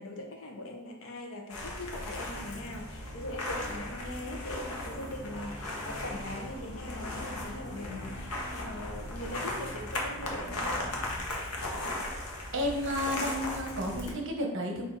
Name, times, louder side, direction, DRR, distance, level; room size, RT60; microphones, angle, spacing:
voice 1, 0.0-10.9, left 1 dB, 60° left, 3 dB, 0.7 m, -41 dB
sound 1, 1.5-14.1, left 1 dB, 85° left, 0.9 m, -37 dB
sound 2, 1.6-11.3, equal, 25° left, 0.6 m, -47 dB
voice 2, 12.5-14.8, equal, 60° right, 2 dB, 0.8 m, -32 dB
4.5 x 2.5 x 4.3 m, 1.0 s
head